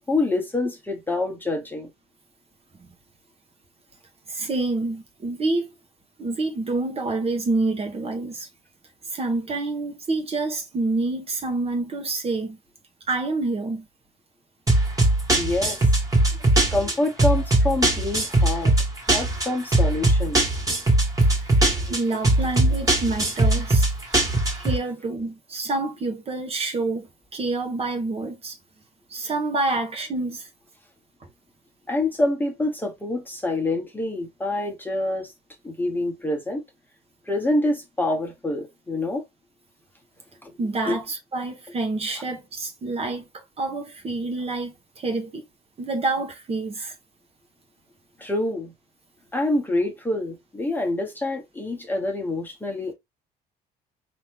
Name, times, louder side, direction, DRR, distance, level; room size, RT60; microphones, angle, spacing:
voice 1, 0.1-1.9 15.3-15.8 16.7-18.7 19.1-20.6 21.6-21.8 31.9-35.3 35.6-36.6 37.3-39.2 40.4-40.5 40.8-41.0 48.2-48.7 49.3-52.9, left 2 dB, 10° left, 1.2 m, -26 dB
voice 2, 4.3-5.7 6.2-8.5 9.0-12.6 13.1-13.8 21.9-23.9 24.5-28.6 29.1-30.5 40.6-45.4 45.8-46.9, right 3 dB, 35° right, 1.1 m, -27 dB
sound 1, 14.7-24.8, right 2 dB, 20° right, 1.9 m, -20 dB
4.4 x 2.9 x 3.5 m
cardioid pair, 110°, 17 cm